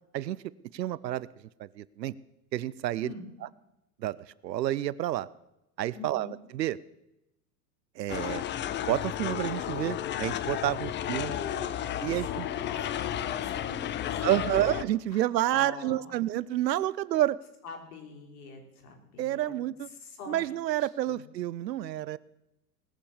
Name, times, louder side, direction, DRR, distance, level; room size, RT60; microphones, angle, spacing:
voice 1, 0.7-1.3 1.6-2.1 2.5-3.1 4.0-4.2 4.4-5.3 5.8-6.8 8.0-8.4 8.8-11.4 12.0-12.5 14.2-17.4 19.2-19.9 20.3-22.2, right 13 dB, 85° right, 20 dB, 0.7 m, -29 dB
voice 2, 5.9-6.4 10.6-11.7 12.3-14.6 15.1-16.2 17.6-19.6 20.0-20.5 21.1-21.2, left 5 dB, 65° left, 4 dB, 3.8 m, -43 dB
sound 1, 8.1-14.8, left 11 dB, 25° left, 0.6 m, -33 dB
19.5 x 7.0 x 7.2 m, 0.91 s
hypercardioid pair, 95°, 49 cm